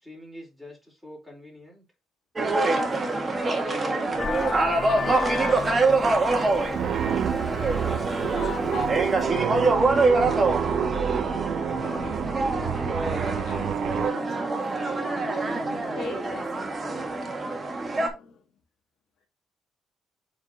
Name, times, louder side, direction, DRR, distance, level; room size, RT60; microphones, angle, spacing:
voice 1, 0.0-1.8, left 1 dB, ahead, 4.1 m, -45 dB
sound 1, 2.4-18.1, right 3 dB, 30° right, 1.5 m, -25 dB
voice 2, 2.7-7.8 8.3-16.7 17.9-18.5, left 7 dB, 70° left, 1.6 m, -43 dB
Vehicle horn car horn honking, 4.2-9.2, left 5 dB, 40° left, 0.5 m, -35 dB
sound 2, 6.7-14.1, right 9 dB, 70° right, 0.4 m, -29 dB
7.9 x 4.3 x 2.8 m
cardioid pair, 90°, 0 cm